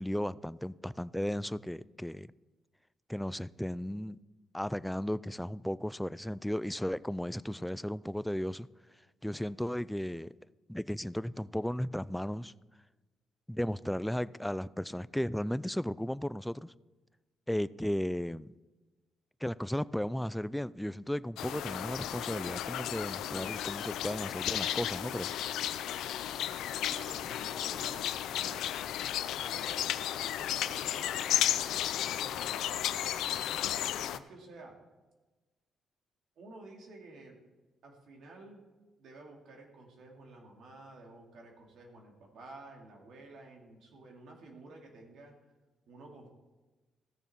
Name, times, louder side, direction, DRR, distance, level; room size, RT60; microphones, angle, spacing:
voice 1, 0.0-2.3 3.1-4.2 4.5-8.7 9.2-10.3 10.7-12.5 13.5-16.7 17.5-18.5 19.4-25.3, equal, 5° left, 0.3 m, -35 dB
sound 1, 21.4-34.2, left 11 dB, 85° left, 0.5 m, -34 dB
voice 2, 26.7-28.6 29.2-33.3 34.0-34.8 36.4-37.4 37.8-38.7 39.0-45.3 45.9-46.3, right 2 dB, 70° right, 2.4 m, -52 dB
14.5 x 6.8 x 4.3 m
cardioid pair, 90°, 0 cm